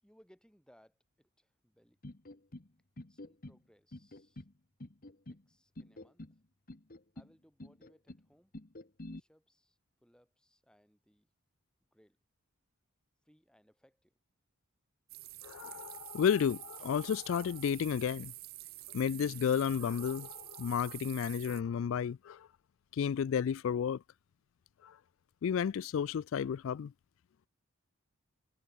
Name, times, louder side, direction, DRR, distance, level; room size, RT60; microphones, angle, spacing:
voice 1, 0.0-2.0 3.1-4.5 5.3-6.4 7.1-8.5 9.1-11.3 11.9-12.2 13.2-14.2, equal, 5° left, 5.4 m, -67 dB
sound 1, 2.0-2.7 3.0-3.6 3.9-4.5 4.8-5.4 5.8-6.4 6.7-7.3 7.6-8.2 8.5-9.2, left 1 dB, 40° left, 1.3 m, -48 dB
sound 2, 15.1-21.6, right 19 dB, 45° right, 0.4 m, -48 dB
voice 2, 15.4-18.3 18.9-22.5 22.9-24.0 24.8-25.0 25.4-26.9, left 7 dB, 65° left, 0.3 m, -32 dB
head